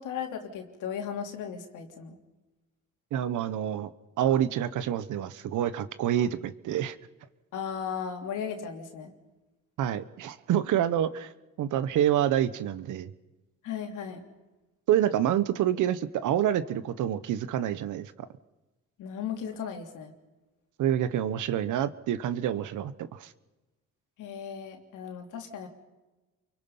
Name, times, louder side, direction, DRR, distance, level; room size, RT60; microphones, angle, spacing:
voice 1, 0.0-2.2 7.5-9.1 13.6-14.3 19.0-20.1 24.2-25.7, left 7 dB, 85° left, 3 dB, 3.3 m, -36 dB
voice 2, 3.1-3.9 4.2-7.0 9.8-11.3 11.6-13.1 14.9-18.1 20.8-23.3, right 11 dB, 80° right, 14 dB, 1.1 m, -27 dB
29.5 x 23.5 x 5.6 m, 1.1 s
cardioid pair, 90°, 30 cm